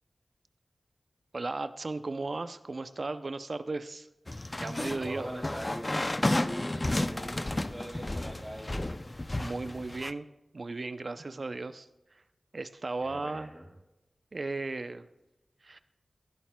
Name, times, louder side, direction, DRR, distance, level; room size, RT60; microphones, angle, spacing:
voice 1, 1.3-4.1 4.5-5.3 9.4-10.3 10.5-11.9 12.5-13.5 14.3-15.1 15.6-15.8, right 3 dB, 55° right, 11 dB, 0.5 m, -35 dB
sound 1, 4.3-10.1, left 1 dB, 30° left, 0.5 m, -32 dB
voice 2, 5.0-6.0 6.3-8.9 13.0-13.7, equal, 5° right, -4 dB, 2.9 m, -42 dB
19.0 x 11.5 x 2.3 m, 0.94 s
wide cardioid pair, 70°, 0 cm